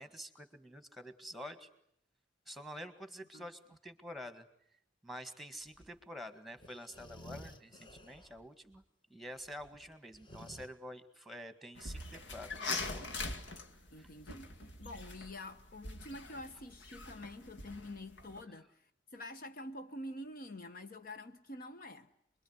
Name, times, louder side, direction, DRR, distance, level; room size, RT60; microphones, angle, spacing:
voice 1, 0.0-1.7 2.5-4.5 5.0-8.8 9.1-13.0 13.5-13.6 13.9-14.1, equal, ahead, 1.8 m, -48 dB
sound 1, 5.7-6.0 6.6-8.5 8.7-8.8 9.4-10.7, left 1 dB, 25° left, 1.3 m, -53 dB
sound 2, 11.8-18.4, left 3 dB, 75° left, 2.1 m, -43 dB
voice 2, 13.9-22.1, left 1 dB, 50° left, 1.1 m, -47 dB
27.0 x 22.0 x 9.6 m
head